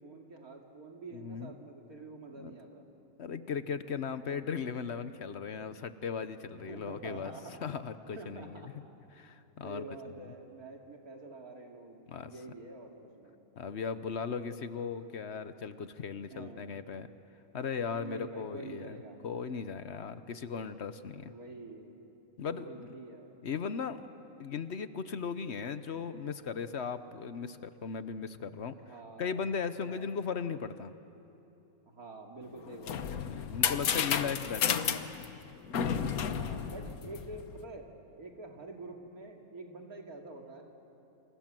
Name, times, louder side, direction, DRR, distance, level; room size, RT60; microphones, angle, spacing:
voice 1, 0.0-2.8 6.7-7.6 8.2-8.7 9.6-13.4 16.3-16.7 17.9-19.2 21.2-21.9 22.5-23.3 28.8-29.4 29.9-30.2 31.9-33.1 36.2-37.9 38.2-40.6, right 2 dB, 80° right, 1 dB, 3.1 m, -47 dB
voice 2, 1.1-1.5 2.4-2.5 3.2-7.3 7.6-8.6 9.1-9.8 12.1-12.3 13.6-17.1 17.5-19.0 19.2-21.3 22.4-22.9 23.4-24.1 24.4-28.8 29.2-30.9 33.1-34.9, left 6 dB, 55° left, 12 dB, 1.0 m, -37 dB
sound 1, 32.5-37.6, left 7 dB, 80° left, 1.5 m, -32 dB
28.5 x 27.0 x 7.6 m, 2.9 s
omnidirectional pair, 1.5 m